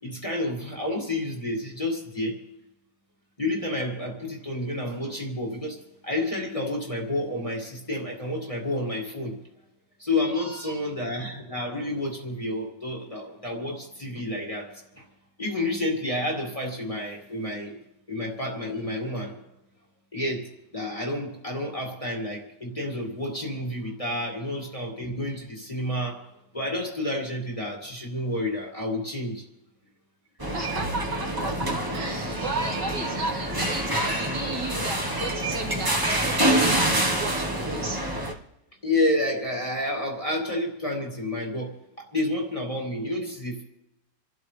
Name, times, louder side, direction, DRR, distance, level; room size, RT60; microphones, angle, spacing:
voice 1, 0.0-2.4 3.4-9.4 10.0-15.1 15.4-17.8 18.1-19.4 20.1-26.3 26.5-29.4 38.8-43.6, left 1 dB, 20° left, -1 dB, 2.2 m, -30 dB
voice 2, 10.3-10.8 30.5-38.0, right 2 dB, 75° right, -1 dB, 3.3 m, -33 dB
sound 1, 30.4-38.3, right 1 dB, 15° right, 1.2 m, -26 dB
28.5 x 12.5 x 3.3 m, 0.87 s
omnidirectional pair, 1.9 m